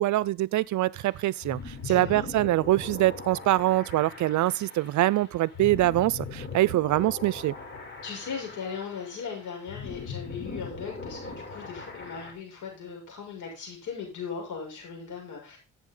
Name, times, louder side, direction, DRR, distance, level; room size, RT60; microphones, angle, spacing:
voice 1, 0.0-7.5, right 16 dB, 70° right, 0.6 m, -24 dB
sound 1, 1.0-12.3, left 4 dB, 40° left, 4.0 m, -41 dB
voice 2, 1.8-2.3 8.0-15.6, left 6 dB, 85° left, 6.7 m, -38 dB
12.0 x 8.3 x 3.9 m
cardioid pair, 90°, 30 cm